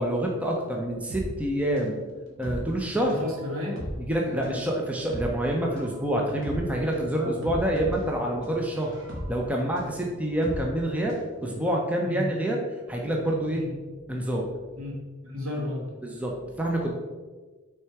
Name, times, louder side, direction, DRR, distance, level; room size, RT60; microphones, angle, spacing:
voice 1, 0.0-2.0 2.4-3.2 4.1-9.0 9.3-12.6 12.9-13.6 14.1-14.5 16.0-16.9, right 1 dB, 5° right, -1 dB, 0.5 m, -27 dB
sound 1, 1.1-11.3 11.6-11.7, equal, 60° right, 1.5 m, -38 dB
voice 2, 2.9-3.7 4.4-4.6 7.1-7.4 12.0-12.2 13.5-13.7 14.8-15.0 15.2-15.9, left 2 dB, 80° right, -3 dB, 1.8 m, -33 dB
5.9 x 3.4 x 4.7 m, 1.3 s
head